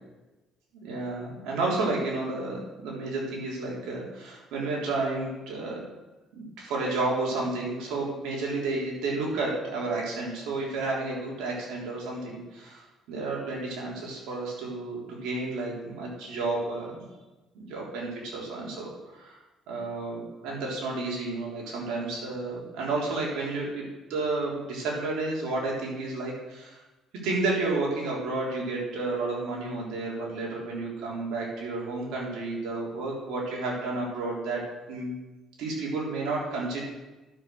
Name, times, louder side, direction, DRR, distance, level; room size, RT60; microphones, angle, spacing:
voice 1, 0.8-5.8 6.3-17.0 17.5-18.9 19.2-19.4 19.7-26.8 27.2-34.6 34.9-35.2 35.6-36.8, right 3 dB, 80° right, -3 dB, 3.8 m, -31 dB
11.0 x 6.3 x 6.4 m, 1.1 s
cardioid pair, 100°, 0 cm